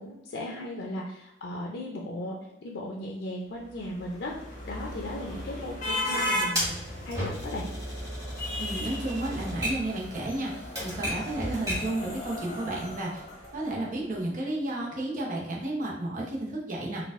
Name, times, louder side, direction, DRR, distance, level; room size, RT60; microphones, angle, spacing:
voice 1, 0.0-4.3 4.6-6.7 7.0-7.7, left 1 dB, 80° left, -1 dB, 0.5 m, -36 dB
sound 1, 3.7-14.0, left 1 dB, 50° left, 1.1 m, -36 dB
Typewriter, 6.5-12.0, equal, 20° right, 1.2 m, -34 dB
voice 2, 8.6-13.2 13.5-17.1, right 1 dB, 45° right, -3 dB, 0.8 m, -32 dB
4.2 x 2.3 x 2.4 m, 0.83 s
head